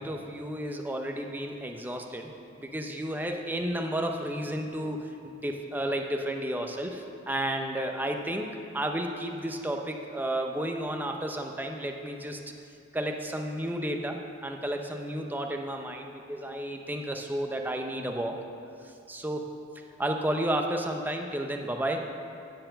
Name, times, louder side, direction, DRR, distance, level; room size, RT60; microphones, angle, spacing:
voice 1, 0.0-2.3 2.6-8.5 8.7-12.4 12.9-18.4 18.8-19.6 20.0-22.1, right 1 dB, 10° right, 3 dB, 0.5 m, -32 dB
9.7 x 4.6 x 7.4 m, 2.6 s
head